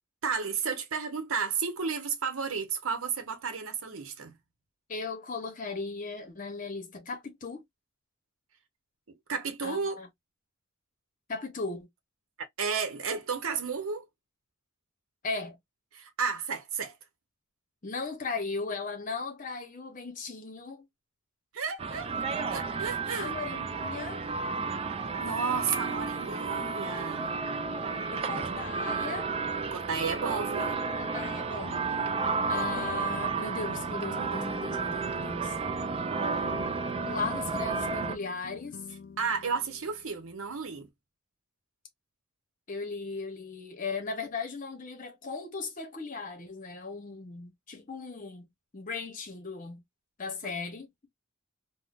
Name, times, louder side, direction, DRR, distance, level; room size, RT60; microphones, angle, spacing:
voice 1, 0.2-4.3 9.1-10.0 12.6-14.1 15.9-17.0 21.5-22.1 22.5-23.3 25.2-27.3 29.7-30.8 39.2-40.9, right 5 dB, 80° right, 0.8 m, -32 dB
voice 2, 4.9-7.6 9.6-10.1 11.3-11.9 15.2-15.6 17.8-20.9 23.2-24.3 28.1-29.3 31.0-31.9 32.5-35.5 37.0-38.8 42.7-48.5 48.7-49.8 50.2-50.9, left 4 dB, 40° left, 0.8 m, -37 dB
sound 1, 21.8-38.2, right 4 dB, 25° right, 0.4 m, -32 dB
sound 2, 31.6-40.9, left 4 dB, 60° left, 0.5 m, -49 dB
3.6 x 2.1 x 2.4 m
head